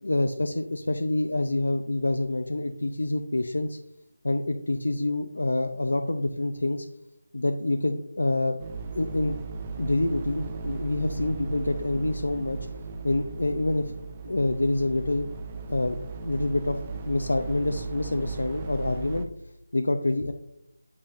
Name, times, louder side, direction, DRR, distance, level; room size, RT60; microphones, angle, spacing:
voice 1, 0.0-3.8 4.2-6.9 7.3-8.6 8.9-9.4 9.8-12.6 13.0-13.9 14.2-15.3 15.7-19.3 19.7-20.3, left 2 dB, 85° left, 6 dB, 0.6 m, -27 dB
sound 1, 8.6-19.3, right 4 dB, 20° right, 0.5 m, -37 dB
8.5 x 8.3 x 2.6 m, 0.79 s
figure-of-eight pair, 170°, 0 cm